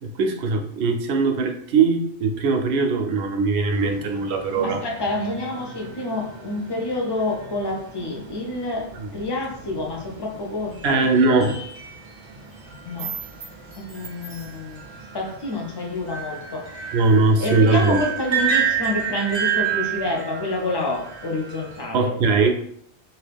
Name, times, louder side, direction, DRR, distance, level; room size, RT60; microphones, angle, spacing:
voice 1, 0.0-4.8 9.0-9.1 10.8-11.6 16.9-18.0 21.9-22.5, right 3 dB, 70° right, 4 dB, 0.8 m, -20 dB
sound 1, 3.7-21.9, right 7 dB, 35° right, 0.5 m, -31 dB
voice 2, 4.6-11.1 12.8-13.1 13.8-16.7 17.4-22.1, left 2 dB, 30° left, -1 dB, 0.5 m, -28 dB
2.9 x 2.4 x 3.4 m, 0.68 s
omnidirectional pair, 1.2 m